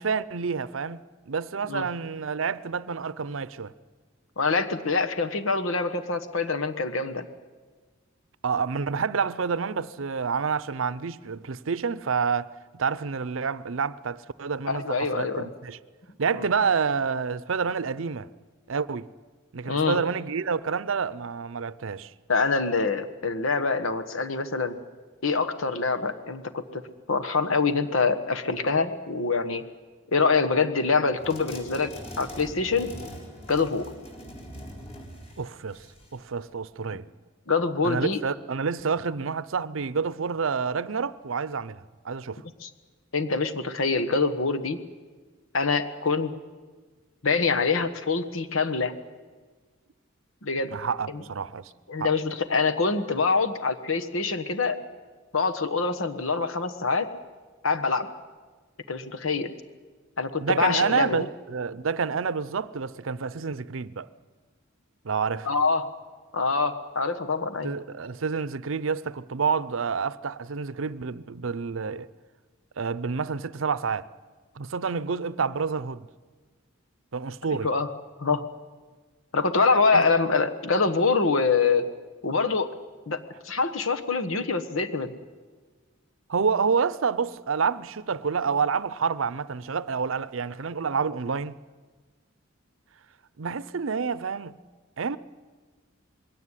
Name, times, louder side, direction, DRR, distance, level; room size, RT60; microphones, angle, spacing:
voice 1, 0.0-3.7 8.4-15.8 16.2-18.3 18.7-19.1 19.5-22.1 35.4-35.8 36.1-37.1 37.8-42.4 50.7-51.7 52.0-52.1 60.4-64.1 65.0-65.5 67.6-72.1 72.8-74.1 74.6-76.1 77.1-77.7 79.9-80.0 86.3-91.5 93.4-94.6 95.0-95.2, right 5 dB, 75° right, 0.6 m, -28 dB
voice 2, 4.4-7.2 14.7-15.5 16.4-16.5 19.6-20.0 22.3-24.8 25.2-26.8 27.1-29.6 30.1-31.9 32.2-32.9 33.5-33.9 37.5-38.2 42.6-42.7 43.1-44.8 45.5-46.3 47.2-48.9 50.4-50.7 51.1-51.2 51.9-54.8 55.3-57.1 57.6-58.1 58.9-59.5 60.2-61.2 65.4-65.9 66.3-67.7 77.6-77.9 78.2-78.4 79.3-81.9 82.2-82.7 83.1-85.1, left 4 dB, 90° left, 1.4 m, -25 dB
sound 1, 31.2-36.2, equal, 30° left, 4.0 m, -42 dB
21.5 x 17.0 x 9.9 m
head